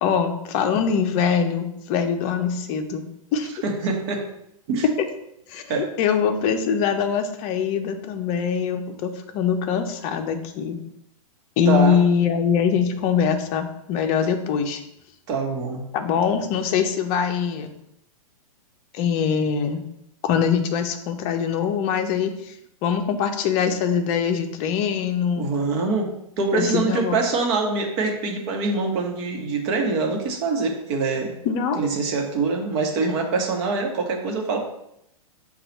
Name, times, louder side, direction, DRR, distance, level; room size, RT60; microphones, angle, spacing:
voice 1, 0.0-3.0 3.3-3.5 5.0-5.1 5.5-10.8 11.6-14.8 15.9-17.7 18.9-19.8 20.2-22.6 22.8-25.5 26.5-27.2 31.4-31.9, left 7 dB, 35° left, 6 dB, 0.5 m, -23 dB
voice 2, 3.6-4.2 4.7-4.8 5.7-5.9 11.7-12.0 15.3-15.8 25.4-26.1 26.4-31.3 31.8-34.7, right 4 dB, 50° right, 2 dB, 1.0 m, -24 dB
5.7 x 2.4 x 4.0 m, 0.79 s
hypercardioid pair, 125°, 18 cm